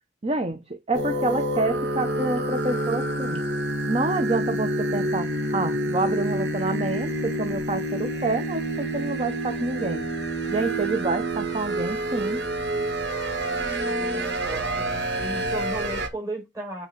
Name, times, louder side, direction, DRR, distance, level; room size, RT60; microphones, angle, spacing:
voice 1, 0.2-3.4 3.9-10.1 10.5-12.4, right 3 dB, 35° right, 0.8 m, -28 dB
sound 1, 0.9-16.1, right 1 dB, 75° right, 2.1 m, -28 dB
voice 2, 13.8-16.9, right 2 dB, 20° right, 5.0 m, -35 dB
8.7 x 4.1 x 5.7 m
head